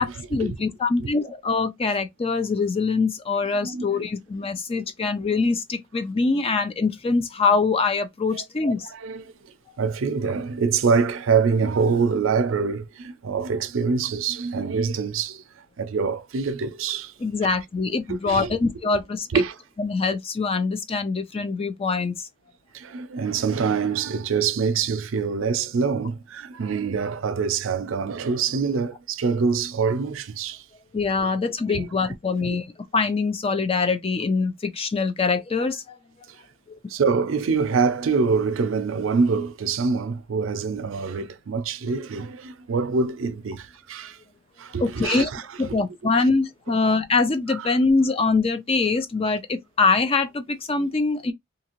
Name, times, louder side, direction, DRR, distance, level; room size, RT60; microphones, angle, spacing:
voice 1, 0.0-8.9 17.2-19.3 19.8-22.3 30.9-32.7 32.9-36.0 36.7-36.8 44.8-45.3 45.6-51.3, left 4 dB, 30° left, 0.4 m, -24 dB
voice 2, 3.6-4.0 4.7-4.8 8.9-9.2 9.8-15.4 15.8-17.1 17.4-17.6 18.1-18.5 19.3-19.6 22.7-30.6 31.7-31.9 36.9-44.2 44.6-45.8 47.5-47.7, right 5 dB, 75° right, 0.5 m, -25 dB
2.7 x 2.5 x 2.9 m
head